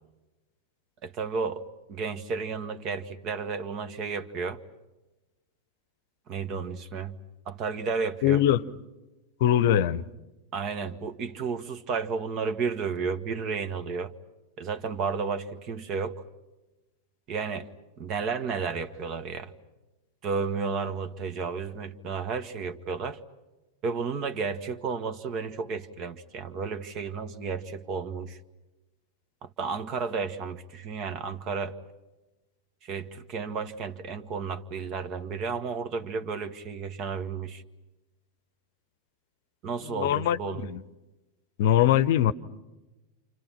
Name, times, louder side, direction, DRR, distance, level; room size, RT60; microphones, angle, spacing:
voice 1, 1.0-1.6 1.9-4.6 6.3-7.1 7.5-8.4 9.7-9.8 10.5-14.1 14.6-16.1 17.3-17.7 18.0-19.5 20.2-23.2 23.8-28.4 29.4-31.7 32.8-37.6 39.6-40.6, right 5 dB, 35° right, 1.6 m, -32 dB
voice 2, 8.2-8.7 9.4-10.0 39.8-40.8 41.6-42.3, left 11 dB, 50° left, 0.9 m, -22 dB
29.5 x 28.5 x 5.9 m
figure-of-eight pair, 90°, 0 cm